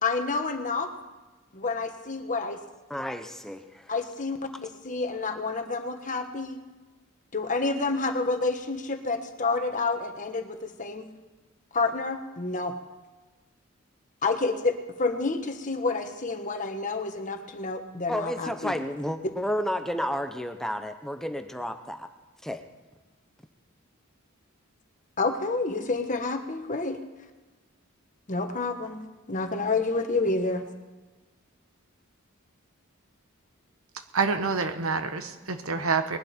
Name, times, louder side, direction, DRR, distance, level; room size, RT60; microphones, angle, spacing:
voice 1, 0.0-0.9 1.5-2.6 3.9-6.6 7.3-11.1 11.7-12.7 14.2-18.8 25.2-27.0 28.3-29.0 29.3-30.6, left 3 dB, 35° left, 6 dB, 1.3 m, -29 dB
voice 2, 2.9-3.9 18.1-22.1 22.4-22.6, equal, ahead, 7 dB, 0.7 m, -31 dB
voice 3, 34.1-36.2, right 4 dB, 75° right, 8 dB, 1.2 m, -27 dB
20.0 x 11.5 x 4.4 m, 1.2 s
head